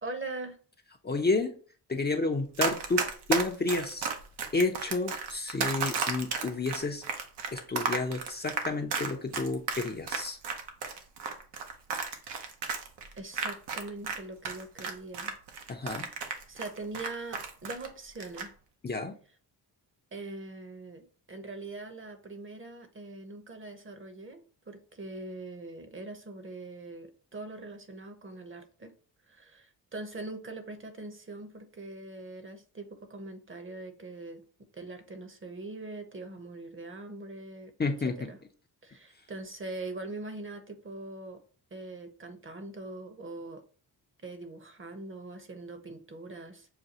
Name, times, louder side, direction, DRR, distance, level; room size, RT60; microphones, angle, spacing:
voice 1, 0.0-0.6 13.1-15.3 16.5-18.5 20.1-24.4 24.7-28.9 29.3-34.4 34.7-37.7 38.3-38.4 38.8-41.4 41.7-43.6 44.2-46.7, right 2 dB, 30° right, 7 dB, 0.9 m, -42 dB
voice 2, 1.0-1.5 1.9-4.0 4.5-7.0 7.5-10.4 15.7-16.1 18.8-19.2 37.8-38.3, left 3 dB, 25° left, 4 dB, 0.6 m, -30 dB
Run, 2.6-14.2 14.4-17.9 18.2-18.5, right 5 dB, 75° right, 0.9 m, -33 dB
6.6 x 2.2 x 2.8 m, 0.41 s
cardioid pair, 70°, 41 cm